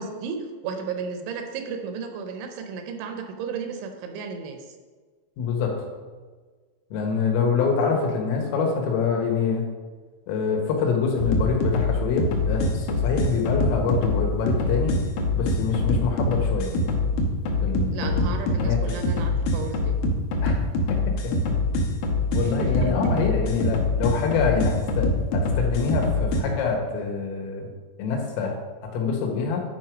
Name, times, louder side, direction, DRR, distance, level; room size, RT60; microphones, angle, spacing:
voice 1, 0.0-4.8 17.9-19.9 22.4-22.9, right 5 dB, 80° right, 6 dB, 3.0 m, -34 dB
voice 2, 5.4-5.7 6.9-9.6 10.3-14.9 15.4-16.7 17.6-19.0 20.4-20.6 21.1-21.2 22.3-25.1 25.3-27.7 28.0-28.6 28.9-29.6, left 5 dB, 90° left, 1 dB, 4.0 m, -25 dB
sound 1, 11.2-26.4, left 2 dB, 75° left, 2.2 m, -24 dB
11.5 x 4.6 x 5.1 m, 1.4 s
omnidirectional pair, 5.7 m